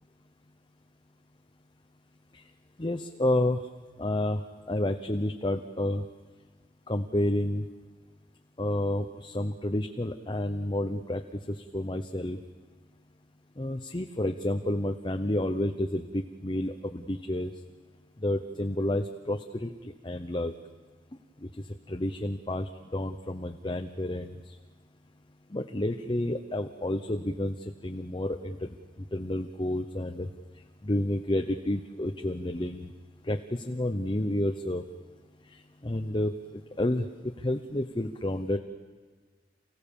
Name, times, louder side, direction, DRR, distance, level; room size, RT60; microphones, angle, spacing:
voice 1, 2.8-3.6 4.0-6.1 6.9-7.6 8.6-11.2 11.5-12.4 13.6-17.5 18.2-20.5 21.4-21.5 21.9-24.6 25.5-27.5 27.8-28.7 29.0-30.3 30.8-32.9 33.2-34.8 35.5-38.6, left 1 dB, 25° left, 5 dB, 0.9 m, -30 dB
29.5 x 17.0 x 7.1 m, 1.5 s
head